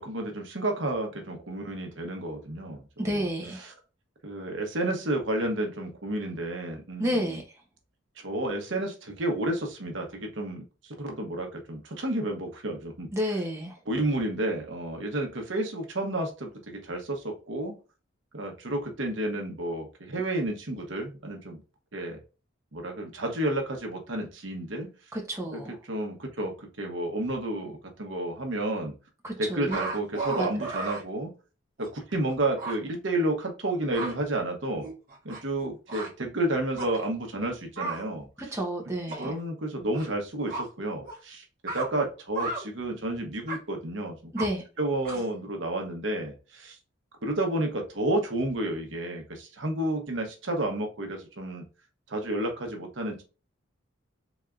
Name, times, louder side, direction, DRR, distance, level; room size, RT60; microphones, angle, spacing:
voice 1, 0.1-2.8 3.0-3.2 4.2-7.4 8.2-8.9 9.2-10.0 10.4-10.6 11.2-13.1 13.9-16.5 16.9-17.0 17.5-17.7 18.3-19.8 20.1-21.5 21.9-22.2 22.7-24.9 25.9-26.5 26.8-27.7 28.0-28.9 29.4-31.3 32.1-33.3 33.6-34.8 35.3-38.2 39.2-40.5 40.8-41.0 41.7-42.5 42.8-44.1 44.8-46.3 47.2-49.2 49.6-51.6 52.1-53.2, right 1 dB, 65° right, 1.0 m, -30 dB
voice 2, 3.0-3.6 7.0-7.4 13.1-13.8 25.1-25.8 29.2-29.8 30.3-30.7 38.4-39.3 44.3-44.6, equal, 15° right, 0.9 m, -30 dB
sound 1, 29.7-31.0 31.8-31.9 32.3-32.4 32.6-32.8 33.7-34.1 34.8-35.6 35.9-36.1 36.8-37.0 37.8-38.0 39.1-39.4 39.9-40.1 40.5-40.7 41.0-41.2 41.7-41.9 42.3-42.7 43.5-43.6 44.4-44.5 45.1-45.3, right 3 dB, 45° right, 1.2 m, -34 dB
4.1 x 3.5 x 2.4 m
head